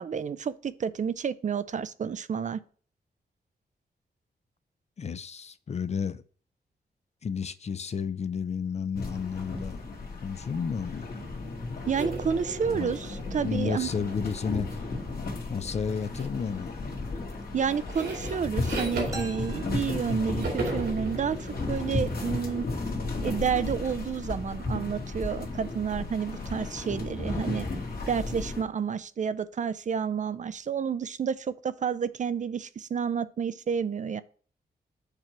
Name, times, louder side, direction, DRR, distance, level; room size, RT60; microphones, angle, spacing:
voice 1, 0.0-2.6 11.9-13.9 17.5-21.4 21.7-22.7 23.2-27.7 28.1-34.2, right 7 dB, 45° right, 0.4 m, -30 dB
voice 2, 5.0-6.2 7.2-9.9 10.2-11.1 12.7-12.9 13.4-14.8 15.5-16.7, left 6 dB, 40° left, 0.4 m, -32 dB
sound 1, 8.9-28.6, left 3 dB, 60° left, 1.7 m, -34 dB
sound 2, 12.0-15.3 16.2-16.5 16.8-20.1 20.4-23.9, right 2 dB, 85° right, 2.6 m, -38 dB
sound 3, 19.1-20.8, right 2 dB, 20° right, 0.8 m, -44 dB
6.7 x 3.1 x 5.9 m
wide cardioid pair, 95°, 17 cm